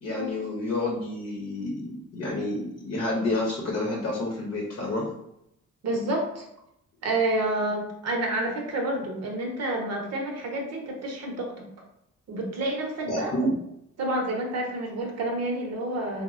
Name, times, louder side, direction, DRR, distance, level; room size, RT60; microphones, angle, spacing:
voice 1, 0.0-5.1 13.1-13.6, left 1 dB, 55° left, -3 dB, 0.8 m, -29 dB
voice 2, 5.8-6.5 7.0-11.7 12.3-13.3 14.0-16.2, right 1 dB, 55° right, 0 dB, 0.8 m, -29 dB
3.0 x 2.1 x 2.5 m, 0.79 s
cardioid pair, 90°, 30 cm